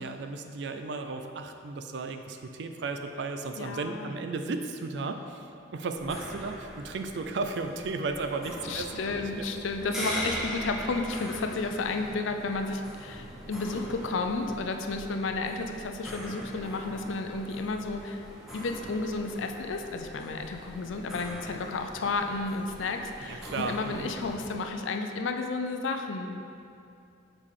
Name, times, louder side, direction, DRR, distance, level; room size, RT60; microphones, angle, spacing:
voice 1, 0.0-5.5 5.7-8.9 9.2-9.5 23.2-24.1, right 3 dB, 60° right, 6 dB, 0.4 m, -34 dB
voice 2, 3.6-4.1 8.7-18.2 18.5-26.4, left 3 dB, 75° left, 5 dB, 0.5 m, -32 dB
sound 1, 6.0-24.5, equal, ahead, 0.8 m, -41 dB
6.5 x 4.9 x 3.7 m, 2.6 s
head